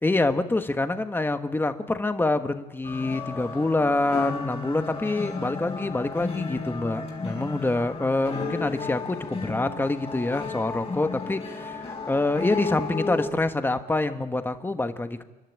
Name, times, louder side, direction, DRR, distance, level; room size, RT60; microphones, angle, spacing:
voice 1, 0.0-15.2, left 2 dB, 15° left, 8 dB, 1.3 m, -26 dB
sound 1, 2.8-13.3, left 4 dB, 35° left, 4.9 m, -33 dB
28.0 x 12.0 x 8.7 m, 1.2 s
cardioid pair, 115°, 17 cm